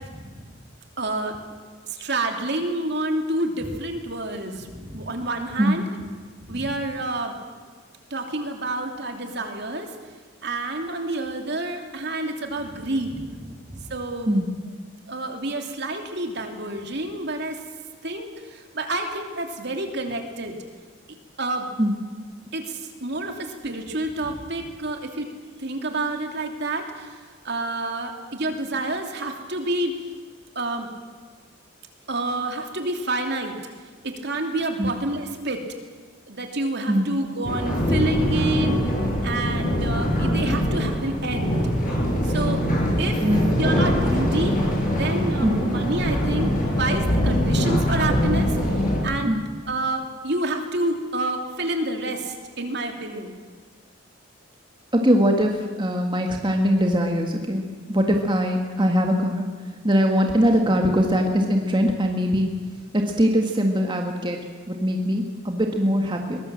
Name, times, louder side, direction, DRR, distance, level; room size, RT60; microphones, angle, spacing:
voice 1, 1.0-1.3 2.0-4.7 4.9-5.8 6.5-7.3 8.1-9.9 10.4-13.2 13.9-14.3 15.1-17.6 18.0-18.3 18.7-20.6 21.4-21.7 22.5-25.3 25.6-27.1 27.4-29.9 30.5-30.9 32.1-33.5 34.0-35.6 36.3-38.8 39.2-41.5 42.3-42.6 43.0-43.2 43.6-44.6 45.0-48.5 49.0-49.3 49.7-53.4, right 2 dB, 55° right, 4 dB, 2.9 m, -28 dB
sound 1, 37.4-49.0, equal, 45° left, 7.4 m, -23 dB
voice 2, 54.9-55.5 55.8-59.4 59.8-62.5 62.9-64.4 64.7-66.4, equal, 25° right, 2 dB, 1.9 m, -21 dB
23.0 x 21.0 x 7.6 m, 1.5 s
head